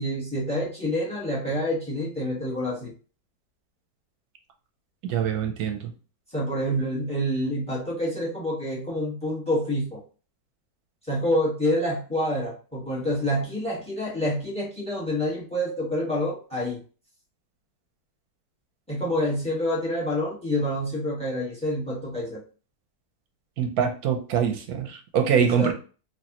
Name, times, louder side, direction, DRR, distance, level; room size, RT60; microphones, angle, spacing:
voice 1, 0.0-2.9 6.3-10.0 11.1-16.8 18.9-22.4 25.4-25.7, equal, 5° left, -3 dB, 1.0 m, -27 dB
voice 2, 5.0-5.8 23.6-25.7, right 7 dB, 65° right, 4 dB, 1.0 m, -24 dB
4.4 x 2.6 x 2.9 m, 0.37 s
omnidirectional pair, 1.9 m